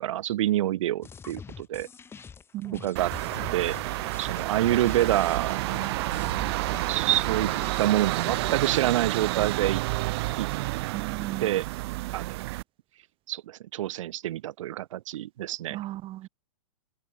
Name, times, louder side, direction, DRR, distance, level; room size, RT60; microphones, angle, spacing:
voice 1, 0.0-1.9 2.8-3.1 3.5-3.8 4.2-5.6 6.7-7.5 7.8-9.8 10.4-10.5 11.4-11.6 12.1-12.4 13.3-15.8, right 13 dB, 65° right, 0.5 m, -27 dB
sound 1, 1.0-8.8, left 6 dB, 15° left, 1.2 m, -44 dB
voice 2, 2.5-2.8 10.9-11.6 15.7-16.3, right 15 dB, 30° right, 2.4 m, -36 dB
sound 2, 3.0-12.6, right 21 dB, 50° right, 1.0 m, -30 dB
open air
hypercardioid pair, 125°, 18 cm